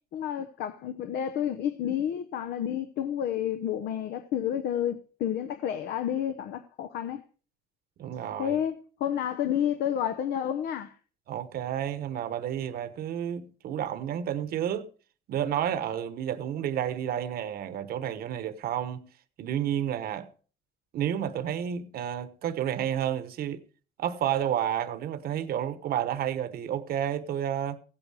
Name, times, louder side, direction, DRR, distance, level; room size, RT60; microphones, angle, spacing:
voice 1, 0.1-7.2 8.4-10.9, left 10 dB, 75° left, 0.9 m, -30 dB
voice 2, 8.0-8.6 11.3-14.9 15.3-19.1 19.4-20.3 20.9-23.6 24.0-27.8, right 10 dB, 65° right, 1.1 m, -31 dB
15.5 x 8.6 x 4.9 m
cardioid pair, 110°, 17 cm